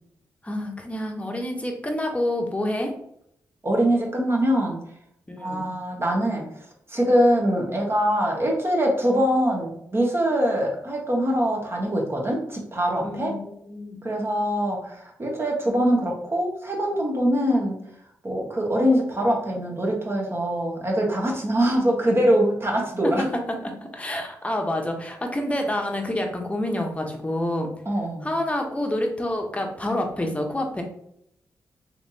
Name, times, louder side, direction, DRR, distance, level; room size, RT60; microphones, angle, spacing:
voice 1, 0.4-2.9 5.3-5.7 13.0-14.0 23.3-27.7 28.2-30.8, left 1 dB, 20° left, 3 dB, 0.9 m, -28 dB
voice 2, 3.6-4.8 5.4-6.4 6.9-13.3 14.0-17.8 18.2-23.2 27.9-28.3, equal, 35° right, -1 dB, 1.3 m, -23 dB
3.2 x 3.0 x 2.7 m, 0.72 s
supercardioid pair, 50°, 7 cm